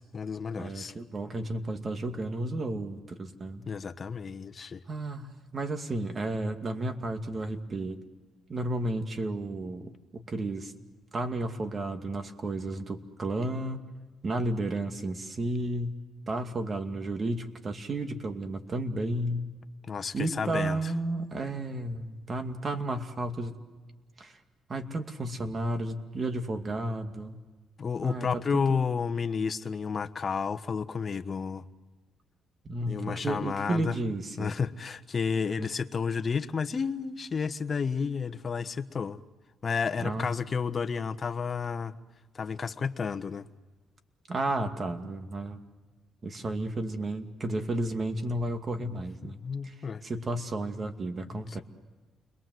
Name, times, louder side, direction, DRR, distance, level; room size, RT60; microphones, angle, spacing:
voice 1, 0.0-0.9 3.7-4.8 19.9-20.8 27.8-31.6 32.9-33.9 34.4-39.2 39.6-41.9 42.3-43.4 49.2-50.0, left 5 dB, 40° left, 1.2 m, -31 dB
voice 2, 0.6-3.7 4.9-8.0 8.5-10.7 11.1-13.8 14.2-15.9 16.3-19.5 20.1-23.6 24.2-24.4 24.7-27.4 28.0-28.9 32.6-34.5 35.6-35.7 40.0-40.3 44.3-45.6 46.2-49.4 49.6-49.8 50.0-51.6, right 2 dB, 35° right, 2.4 m, -32 dB
30.0 x 22.0 x 7.9 m
cardioid pair, 90°, 0 cm